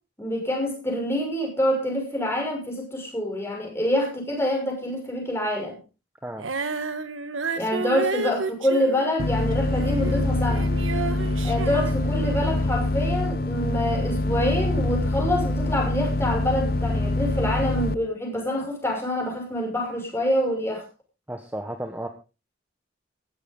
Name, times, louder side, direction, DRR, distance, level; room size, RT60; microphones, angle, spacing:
voice 1, 0.2-5.8 7.6-10.7 11.4-20.8, left 1 dB, 15° left, 1 dB, 6.4 m, -26 dB
Female singing, 6.4-12.6, right 3 dB, 90° right, 1.6 m, -31 dB
sound 1, 9.2-18.0, left 2 dB, 50° left, 0.7 m, -25 dB
voice 2, 21.3-22.1, right 1 dB, 10° right, 5 dB, 1.3 m, -33 dB
15.5 x 13.0 x 3.8 m, 0.31 s
head